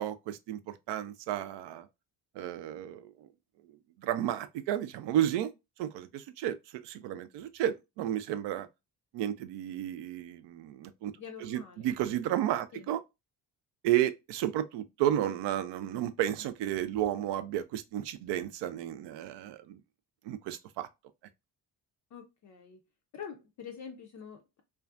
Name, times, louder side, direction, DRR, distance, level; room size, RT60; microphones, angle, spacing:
voice 1, 0.0-1.9 2.4-3.3 3.7-5.5 5.8-6.6 6.8-8.7 9.1-11.1 11.4-13.0 13.8-19.8 20.2-20.9, right 12 dB, 60° right, 0.5 m, -32 dB
voice 2, 11.2-12.0 12.7-12.9 22.1-22.8 23.1-24.6, left 7 dB, 40° left, 0.5 m, -46 dB
2.4 x 2.2 x 2.4 m
hypercardioid pair, 50°, 50 cm